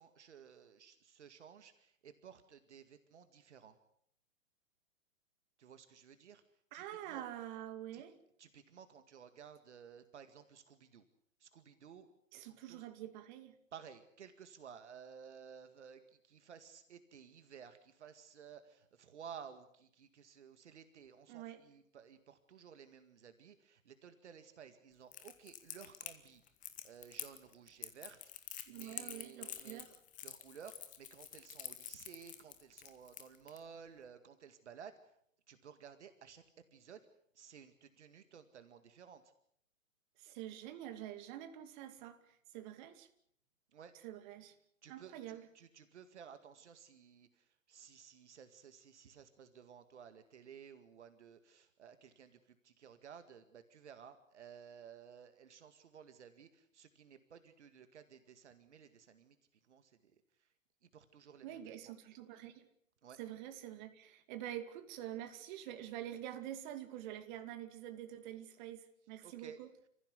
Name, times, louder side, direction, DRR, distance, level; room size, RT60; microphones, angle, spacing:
voice 1, 0.0-3.8 5.6-6.4 6.7-7.3 7.9-8.0 8.4-11.1 11.4-12.1 12.3-12.9 13.7-26.4 26.8-28.2 28.7-29.8 30.2-35.2 35.5-36.4 36.7-37.0 37.3-39.3 43.7-43.9 44.8-59.4 59.6-60.5 60.8-61.9 63.0-63.2 69.2-69.6, right 7 dB, 60° right, 10 dB, 2.1 m, -56 dB
voice 2, 6.7-8.1 12.3-13.5 21.3-21.6 28.7-29.9 40.2-43.1 44.0-44.5 44.9-45.5 61.4-62.7 63.2-69.7, right 12 dB, 35° right, 8 dB, 2.6 m, -47 dB
Crackle, 25.1-33.6, left 11 dB, 20° left, 1.9 m, -48 dB
29.5 x 15.5 x 8.3 m, 0.69 s
figure-of-eight pair, 115°, 39 cm